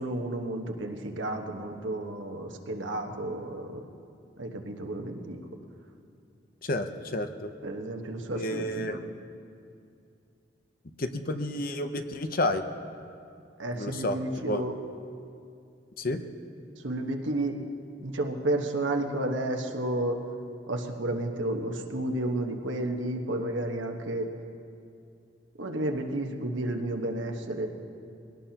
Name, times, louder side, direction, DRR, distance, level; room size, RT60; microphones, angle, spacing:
voice 1, 0.0-3.8 4.4-5.4 7.6-9.0 13.6-14.7 16.8-17.6 18.0-20.2 20.7-24.3 25.6-27.7, right 1 dB, 80° right, 3 dB, 1.3 m, -31 dB
voice 2, 6.6-7.5 8.3-9.0 11.0-12.6 13.7-14.2 14.5-14.6 16.0-16.2, left 1 dB, 50° left, 7 dB, 0.8 m, -30 dB
22.0 x 17.5 x 2.9 m, 2.5 s
head